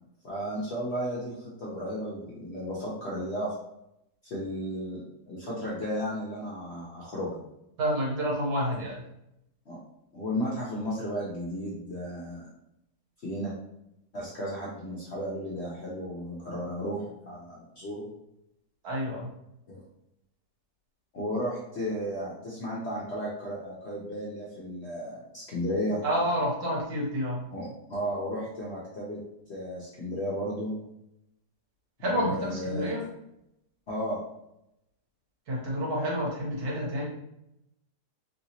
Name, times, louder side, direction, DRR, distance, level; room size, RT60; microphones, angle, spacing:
voice 1, 0.2-3.5 4.2-7.4 9.7-9.8 10.1-12.5 13.2-13.5 14.1-18.1 19.7-19.8 21.1-26.0 27.5-29.2 29.5-30.7 32.0-32.9 33.9-34.2, equal, 55° left, -6 dB, 0.7 m, -34 dB
voice 2, 7.8-9.0 18.8-19.3 26.0-27.4 32.0-33.1 35.5-37.1, equal, 65° right, -4 dB, 1.5 m, -29 dB
3.2 x 2.9 x 2.8 m, 0.83 s
omnidirectional pair, 1.9 m